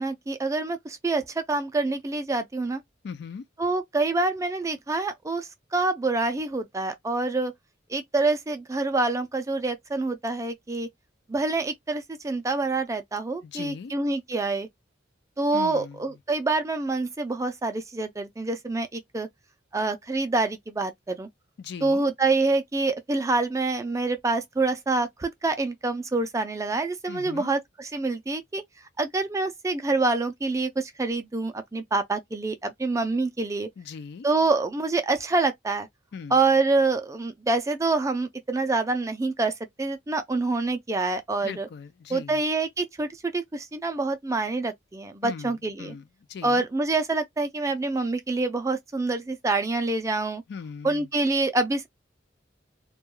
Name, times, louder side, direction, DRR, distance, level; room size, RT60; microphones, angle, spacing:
voice 1, 0.0-2.8 3.6-7.5 7.9-10.9 11.3-14.7 15.4-19.3 19.7-21.3 21.8-28.6 29.0-33.7 34.2-35.9 36.3-41.7 42.1-45.9 46.4-50.4 50.8-51.9, right 3 dB, 15° right, 0.3 m, -26 dB
voice 2, 3.0-3.5 13.4-13.9 15.5-16.0 21.6-22.1 27.1-27.5 33.8-34.3 36.1-36.4 41.4-42.4 45.2-46.7 50.5-51.1, left 6 dB, 60° left, 0.4 m, -39 dB
2.2 x 2.2 x 3.0 m
head